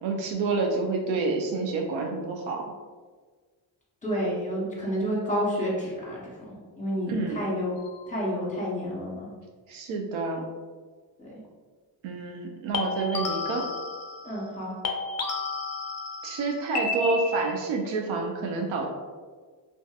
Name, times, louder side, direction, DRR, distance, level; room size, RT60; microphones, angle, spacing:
voice 1, 0.0-2.6 7.1-7.4 9.7-10.4 12.0-13.6 16.2-18.9, right 3 dB, 70° right, 2 dB, 0.6 m, -28 dB
voice 2, 4.0-6.2 6.5-7.7 8.1-9.3 11.2-11.3 14.2-14.7, equal, 15° left, -5 dB, 1.1 m, -29 dB
sound 1, 7.8-8.1 12.7-14.6 14.8-17.7, left 3 dB, 35° left, 0.4 m, -32 dB
2.5 x 2.4 x 2.3 m, 1.5 s
supercardioid pair, 60°, 50 cm